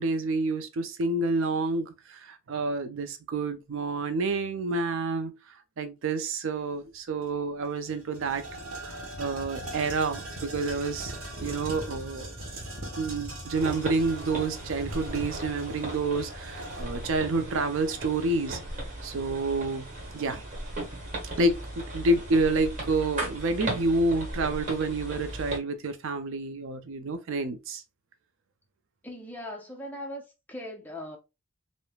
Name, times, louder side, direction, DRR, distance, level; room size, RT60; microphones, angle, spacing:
voice 1, 0.0-5.4 5.8-8.4 8.8-11.1 11.4-12.3 13.0-18.6 19.0-19.9 20.1-20.4 21.4-27.8, right 2 dB, 65° right, 0.4 m, -29 dB
sound 1, 7.2-7.3 7.6-18.3, right 1 dB, 85° right, 1.0 m, -40 dB
sound 2, 13.5-25.6, right 1 dB, 35° right, 1.1 m, -37 dB
voice 2, 29.0-31.2, left 1 dB, 10° left, 0.6 m, -39 dB
3.1 x 2.1 x 2.2 m
head